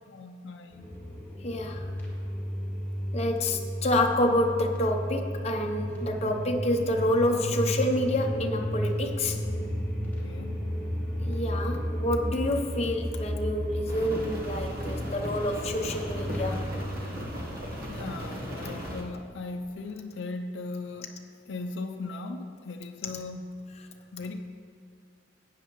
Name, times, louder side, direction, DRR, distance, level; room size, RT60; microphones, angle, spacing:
voice 1, 0.1-0.9 10.0-10.6 17.7-23.6 24.1-24.4, left 3 dB, 70° left, 6 dB, 0.5 m, -38 dB
sound 1, 0.7-16.7, equal, 10° left, 2.7 m, -33 dB
voice 2, 1.4-1.9 3.1-9.4 11.2-16.6 23.1-23.2, left 1 dB, 35° left, 3 dB, 0.8 m, -28 dB
Rain, 13.9-19.0, equal, 50° right, 1.2 m, -37 dB
14.5 x 9.0 x 3.1 m, 2.2 s
head